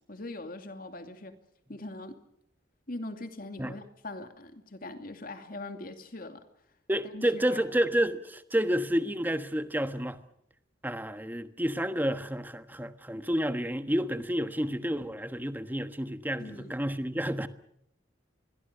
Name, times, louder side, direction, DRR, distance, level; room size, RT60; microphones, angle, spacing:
voice 1, 0.1-1.4 1.7-2.2 2.9-6.4 7.1-7.6 16.4-16.7, left 2 dB, 50° left, 2.6 m, -41 dB
voice 2, 6.9-10.2 10.8-17.5, equal, 10° right, 1.3 m, -30 dB
27.0 x 22.0 x 6.8 m
head